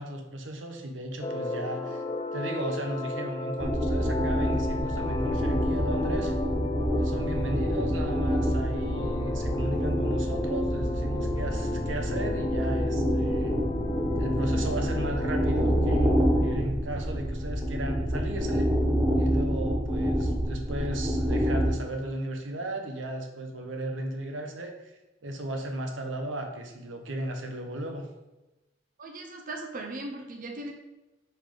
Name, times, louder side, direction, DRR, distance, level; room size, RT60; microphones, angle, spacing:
voice 1, 0.0-2.0 2.3-6.3 6.9-13.6 14.2-18.7 19.2-24.9 25.2-28.1, right 1 dB, 85° right, 4 dB, 0.9 m, -35 dB
sound 1, 1.2-16.6, left 2 dB, 25° left, 0.3 m, -34 dB
sound 2, 3.6-21.7, equal, 15° right, 1.1 m, -27 dB
voice 2, 29.0-30.7, right 2 dB, 45° right, 2 dB, 0.7 m, -38 dB
5.4 x 5.2 x 3.8 m, 1.0 s
head